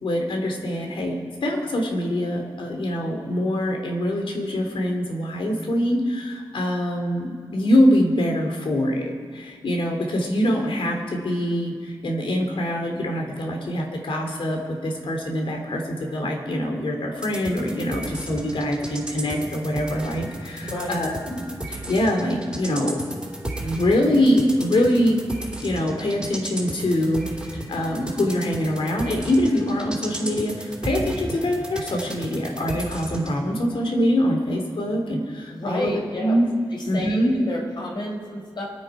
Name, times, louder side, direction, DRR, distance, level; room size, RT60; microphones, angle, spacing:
voice 1, 0.0-23.0 23.4-25.2 25.6-27.3 27.5-36.5 36.8-37.3, left 1 dB, 70° left, 2 dB, 2.6 m, -24 dB
sound 1, 17.2-33.3, right 1 dB, 10° right, 3.1 m, -35 dB
voice 2, 20.6-21.0 35.5-36.4 36.7-38.6, left 1 dB, 55° left, -1 dB, 3.9 m, -31 dB
24.5 x 9.2 x 4.9 m, 2.1 s
wide cardioid pair, 100°, 9 cm